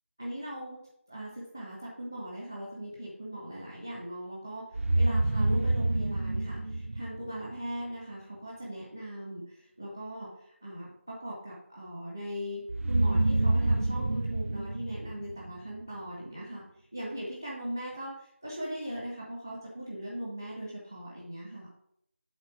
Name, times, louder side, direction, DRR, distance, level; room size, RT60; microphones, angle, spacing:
voice 1, 0.2-0.8 1.1-21.7, equal, 10° left, -3 dB, 0.5 m, -39 dB
sound 1, 4.7-7.7 12.7-15.9, right 2 dB, 75° right, 0.5 m, -28 dB
8.0 x 3.8 x 6.5 m, 0.71 s
figure-of-eight pair, 180°, 7 cm